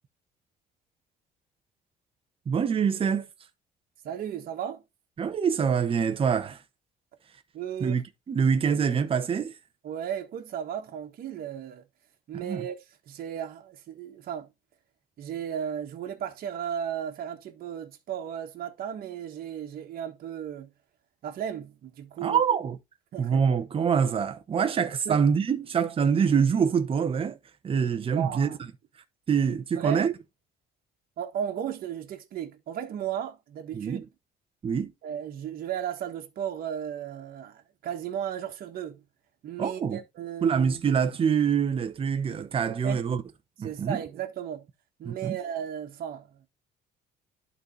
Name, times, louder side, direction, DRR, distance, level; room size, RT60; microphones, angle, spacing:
voice 1, 2.5-3.3 5.2-6.6 7.8-9.5 12.3-12.6 22.2-22.8 23.2-27.4 27.6-28.5 29.3-30.1 33.7-34.0 34.6-34.9 39.6-40.0 40.4-43.2 43.6-44.0 45.0-45.4, right 6 dB, 35° right, 0.9 m, -25 dB
voice 2, 4.0-4.8 7.5-8.0 8.7-8.8 9.8-11.8 12.3-12.8 13.1-14.5 15.2-20.7 21.2-22.4 23.1-23.4 25.0-25.2 28.1-28.6 29.7-30.1 31.2-34.0 35.0-39.0 39.4-40.6 42.8-43.0 43.6-44.6 45.0-46.3, right 9 dB, 60° right, 1.4 m, -35 dB
11.0 x 4.1 x 3.2 m
cardioid pair, 110°, 17 cm